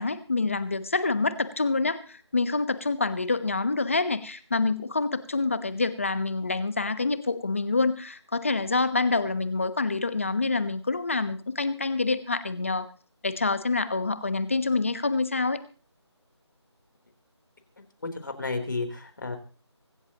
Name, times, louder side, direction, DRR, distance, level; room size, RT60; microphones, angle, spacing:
voice 1, 0.0-12.9 13.2-15.6, left 3 dB, 30° left, 13 dB, 1.1 m, -27 dB
voice 2, 18.0-19.4, left 3 dB, 45° left, 5 dB, 3.6 m, -32 dB
25.0 x 12.5 x 3.0 m, 0.38 s
figure-of-eight pair, 175°, 15 cm